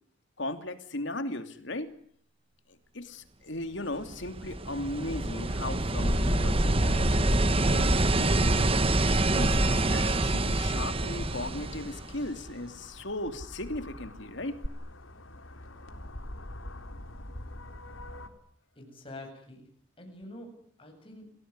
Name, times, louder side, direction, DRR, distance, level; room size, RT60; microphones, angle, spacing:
voice 1, 0.4-1.9 2.7-7.4 7.6-8.7 9.3-9.6 9.9-14.6, left 1 dB, 65° left, 9 dB, 2.8 m, -37 dB
sound 1, 4.0-12.5 14.6-14.7, right 2 dB, 30° right, 1.2 m, -26 dB
sound 2, 5.9-18.3, left 1 dB, 80° left, 3.8 m, -37 dB
voice 2, 18.8-19.7 20.0-21.3, left 1 dB, 25° left, 3 dB, 7.9 m, -46 dB
30.0 x 19.5 x 9.7 m, 0.63 s
head